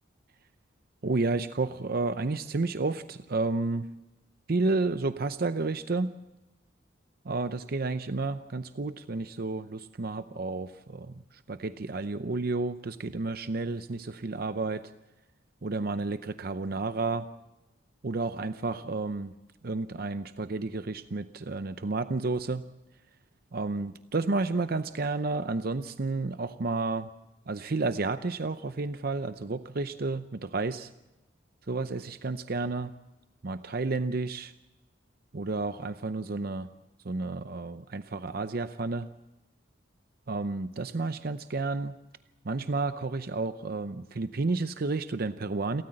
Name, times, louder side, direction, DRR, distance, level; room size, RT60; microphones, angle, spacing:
voice 1, 1.0-3.9 4.5-6.1 7.3-11.1 11.5-14.9 15.6-17.2 18.0-19.3 19.6-22.6 23.5-27.1 27.5-30.9 31.7-32.9 33.4-34.5 35.3-36.7 37.0-39.1 40.3-41.9 42.4-45.8, right 3 dB, 50° right, 11 dB, 0.7 m, -31 dB
29.5 x 13.5 x 7.7 m, 0.98 s
head